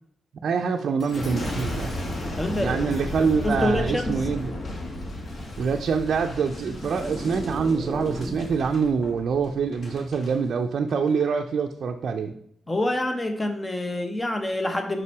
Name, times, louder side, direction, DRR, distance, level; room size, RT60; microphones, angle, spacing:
voice 1, 0.4-1.9 2.6-4.5 5.6-12.3, right 5 dB, 65° right, 3 dB, 0.4 m, -25 dB
Boom, 1.0-10.3 10.9-11.3, left 1 dB, 45° left, 1.4 m, -34 dB
voice 2, 2.4-2.9 3.4-4.2 12.7-15.0, left 1 dB, 15° left, 6 dB, 0.9 m, -26 dB
sound 1, 6.2-8.7, right 1 dB, 10° right, 1.0 m, -36 dB
5.7 x 5.4 x 4.6 m, 0.70 s
wide cardioid pair, 125°, 0 cm